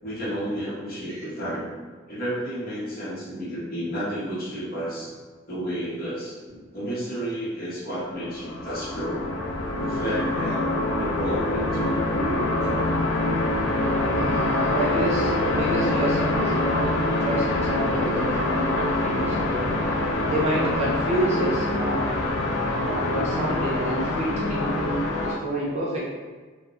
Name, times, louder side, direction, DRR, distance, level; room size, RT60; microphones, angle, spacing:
voice 1, 0.0-1.7 2.1-5.1 5.5-6.4 6.7-9.3 9.8-10.7 11.0-12.9, equal, 50° left, -8 dB, 0.9 m, -31 dB
sound 1, 8.2-25.4, left 2 dB, 75° left, 0.4 m, -25 dB
voice 2, 14.1-19.7 20.2-22.1 22.8-26.0, right 1 dB, 35° right, -6 dB, 0.6 m, -28 dB
3.2 x 2.0 x 2.5 m, 1.4 s
head